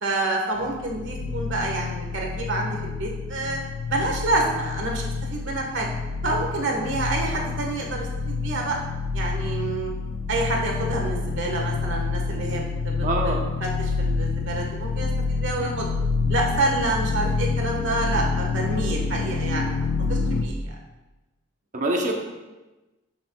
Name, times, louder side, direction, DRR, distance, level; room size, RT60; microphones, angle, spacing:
voice 1, 0.0-3.6 3.9-5.9 6.2-8.8 9.1-9.9 10.3-15.9 16.3-19.8 20.1-20.8, right 2 dB, 65° right, 0 dB, 1.4 m, -28 dB
sound 1, 0.6-20.4, left 4 dB, 70° left, 0.5 m, -28 dB
voice 2, 13.0-13.4 21.7-22.2, right 1 dB, 40° right, 1 dB, 1.0 m, -24 dB
12.0 x 5.8 x 2.3 m, 1.1 s
head